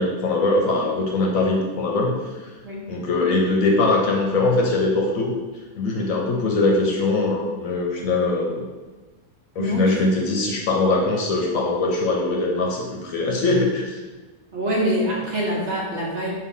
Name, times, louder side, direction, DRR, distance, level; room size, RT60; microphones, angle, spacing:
voice 1, 0.0-2.5 2.9-5.3 5.8-8.6 9.6-14.0, left 2 dB, 65° left, 0 dB, 1.0 m, -22 dB
voice 2, 9.6-10.0 14.5-16.4, equal, 55° right, -4 dB, 0.9 m, -25 dB
4.8 x 2.8 x 3.6 m, 1.2 s
omnidirectional pair, 1.7 m